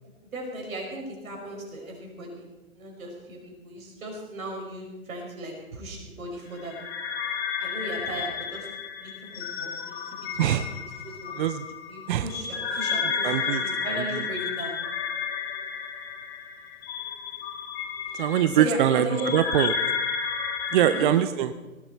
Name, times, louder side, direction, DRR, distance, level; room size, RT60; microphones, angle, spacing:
voice 1, 0.3-2.5 2.7-6.7 7.3-8.7 9.0-11.3 11.9-14.8 18.5-19.3 20.8-21.1, right 1 dB, 70° right, 1 dB, 5.4 m, -37 dB
sound 1, 6.6-21.0, left 6 dB, 45° left, 2.0 m, -32 dB
voice 2, 12.7-14.3 18.1-19.7 20.7-21.5, right 10 dB, 35° right, 11 dB, 0.5 m, -24 dB
18.5 x 12.0 x 4.5 m, 1.1 s
hypercardioid pair, 130°, 43 cm